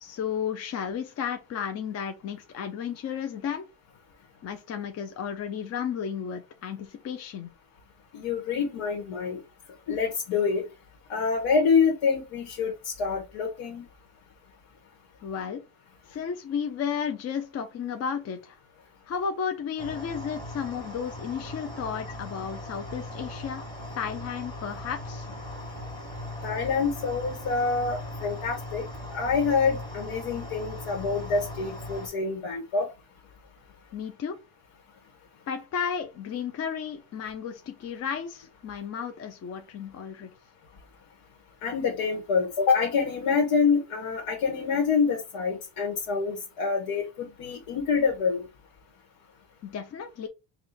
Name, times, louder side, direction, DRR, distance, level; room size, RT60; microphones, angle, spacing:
voice 1, 0.0-3.7 4.4-7.5 15.2-15.6 16.1-18.6 19.1-23.7 23.9-25.3 33.9-34.4 35.5-40.3 49.6-50.3, left 7 dB, 35° left, 0.4 m, -33 dB
voice 2, 8.1-9.4 9.9-10.6 11.1-13.9 26.4-28.9 29.1-32.9 41.6-48.5, left 5 dB, 85° left, 1.2 m, -26 dB
sound 1, 19.8-32.1, left 1 dB, 10° left, 1.2 m, -39 dB
3.5 x 2.3 x 4.1 m
cardioid pair, 140°, 49 cm